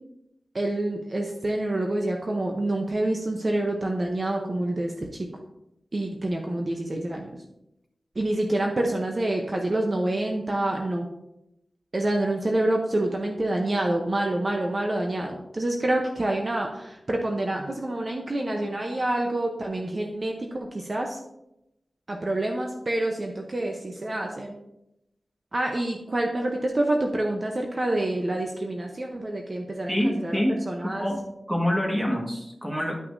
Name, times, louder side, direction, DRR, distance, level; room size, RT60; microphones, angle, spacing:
voice 1, 0.5-5.3 5.9-7.4 8.2-11.1 11.9-21.2 22.1-24.6 25.5-31.1, right 1 dB, 40° right, 1 dB, 0.8 m, -27 dB
voice 2, 29.9-31.2 31.5-33.0, equal, 5° right, 0 dB, 1.6 m, -26 dB
11.5 x 5.8 x 2.7 m, 0.87 s
wide cardioid pair, 100°, 0 cm